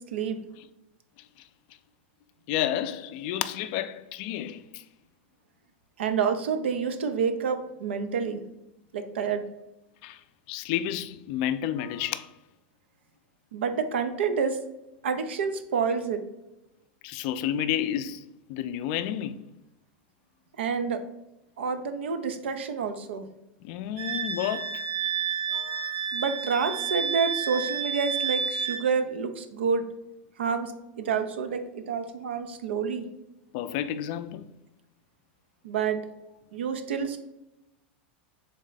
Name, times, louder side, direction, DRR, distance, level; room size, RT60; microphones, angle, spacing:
voice 1, 2.5-4.8 10.0-10.2 10.5-12.3 17.0-18.2 18.5-19.3 23.6-24.8 25.5-25.9 33.5-34.4 37.0-37.1, left 11 dB, 55° left, 0.3 m, -30 dB
voice 2, 6.0-8.4 8.9-9.5 13.5-14.6 15.0-16.2 20.6-21.0 21.6-23.2 26.1-29.9 30.4-30.7 31.0-33.1 35.6-36.0 36.5-37.2, right 6 dB, 85° right, 0.5 m, -28 dB
Wind instrument woodwind instrument, 24.0-28.9, right 7 dB, 55° right, 1.0 m, -30 dB
3.6 x 3.2 x 3.9 m
hypercardioid pair, 115°, 6 cm